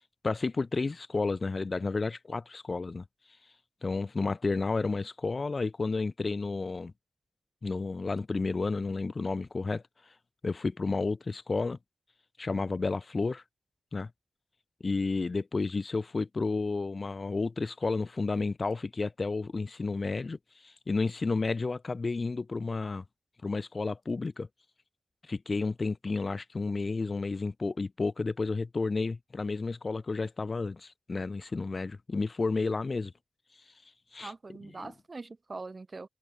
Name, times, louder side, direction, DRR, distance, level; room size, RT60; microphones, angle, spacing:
voice 1, 0.2-3.0 3.8-6.9 7.6-9.8 10.4-11.8 12.4-13.4 13.9-14.1 14.8-23.0 23.4-24.5 25.3-33.1 34.1-34.3 34.8-34.9, left 3 dB, 45° left, 0.4 m, -31 dB
voice 2, 34.2-36.1, right 3 dB, 40° right, 1.9 m, -42 dB
wide cardioid pair, 90°, 0 cm